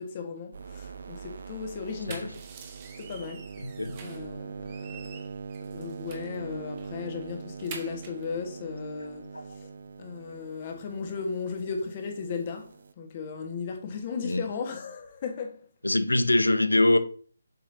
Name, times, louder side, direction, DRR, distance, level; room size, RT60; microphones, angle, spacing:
voice 1, 0.0-2.4 3.0-3.5 4.0-5.2 5.7-9.7 10.0-15.7, left 5 dB, 30° left, 1.4 m, -36 dB
sound 1, 0.5-12.9, right 5 dB, 55° right, 0.5 m, -42 dB
sound 2, 1.8-4.3 4.7-6.4 6.8-6.9 7.2-8.3, right 6 dB, 25° right, 0.9 m, -47 dB
voice 2, 3.6-4.0 9.3-9.4 14.2-14.4 15.8-17.0, left 1 dB, 80° left, 0.7 m, -23 dB
7.2 x 4.8 x 2.7 m
figure-of-eight pair, 145°, 0 cm